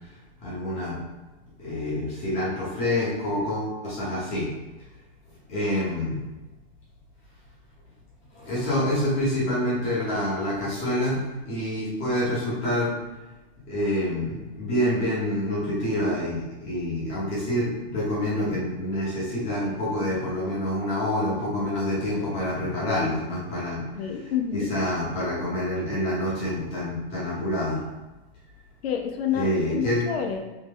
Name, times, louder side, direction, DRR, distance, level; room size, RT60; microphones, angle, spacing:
voice 1, 0.4-1.0 1.6-4.5 5.5-6.2 8.3-11.2 11.5-12.9 13.7-23.8 24.5-27.8 29.3-30.0, left 1 dB, 20° left, -7 dB, 0.9 m, -27 dB
voice 2, 24.0-24.7 28.8-30.4, left 8 dB, 75° left, 4 dB, 0.6 m, -28 dB
3.2 x 2.6 x 3.4 m, 1.1 s
supercardioid pair, 170°, 31 cm